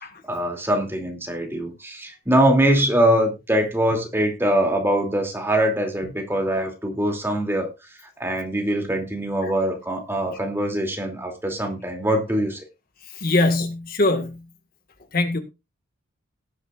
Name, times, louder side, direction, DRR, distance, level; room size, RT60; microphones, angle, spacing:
voice 1, 0.3-12.6, right 1 dB, 10° right, 2.7 m, -23 dB
voice 2, 13.0-14.5 15.1-15.4, left 2 dB, 45° left, 1.7 m, -22 dB
18.5 x 9.9 x 2.5 m
head